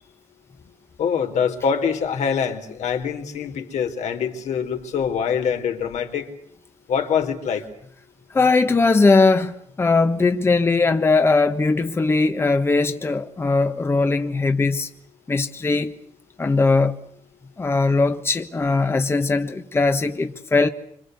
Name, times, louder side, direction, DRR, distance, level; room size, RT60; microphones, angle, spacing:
voice 1, 1.0-6.3 6.9-7.6, left 7 dB, 70° left, 4.1 m, -24 dB
voice 2, 8.3-14.9 15.3-16.0 16.4-16.9 17.6-20.7, left 3 dB, 20° left, 1.3 m, -19 dB
27.5 x 27.0 x 8.1 m
cardioid pair, 155°, 12 cm